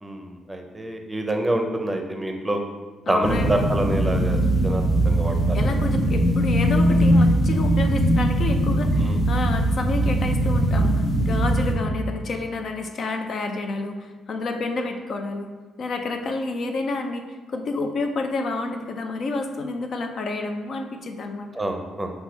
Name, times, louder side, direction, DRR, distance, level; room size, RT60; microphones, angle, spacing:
voice 1, 0.0-2.6 3.1-5.8 9.0-9.2 21.6-22.1, right 1 dB, 15° right, 4 dB, 0.6 m, -27 dB
voice 2, 3.1-3.7 5.5-15.5 15.8-21.5, left 3 dB, 55° left, 5 dB, 0.5 m, -29 dB
sound 1, 3.2-11.7, right 1 dB, 40° left, 0.8 m, -20 dB
5.4 x 2.3 x 4.3 m, 1.3 s
cardioid pair, 90°, 0 cm